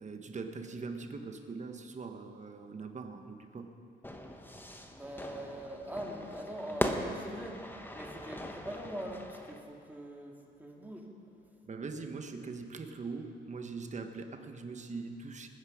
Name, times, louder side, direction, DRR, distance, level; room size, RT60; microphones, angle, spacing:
voice 1, 0.0-3.7 11.7-15.5, right 4 dB, 35° right, 6 dB, 1.3 m, -42 dB
Fire / Fireworks, 4.0-9.6, left 1 dB, 10° left, 1.2 m, -39 dB
voice 2, 4.9-11.1, right 1 dB, 10° right, 0 dB, 2.3 m, -43 dB
20.5 x 9.7 x 5.1 m, 2.6 s
cardioid pair, 90°, 20 cm